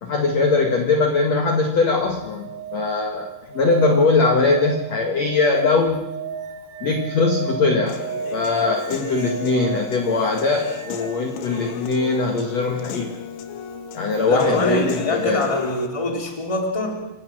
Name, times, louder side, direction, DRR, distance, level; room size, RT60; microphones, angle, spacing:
voice 1, 0.0-6.1 6.8-8.1 8.3-13.2 13.9-15.5, left 3 dB, 50° left, 3 dB, 2.3 m, -21 dB
sound 1, 2.0-11.8 14.1-14.2, right 6 dB, 75° right, 3.3 m, -34 dB
Human voice / Piano, 7.9-15.9, left 8 dB, 85° left, 4.0 m, -35 dB
voice 2, 14.3-16.9, left 2 dB, 10° left, 2 dB, 2.8 m, -24 dB
28.5 x 24.5 x 6.3 m, 0.95 s
omnidirectional pair, 5.1 m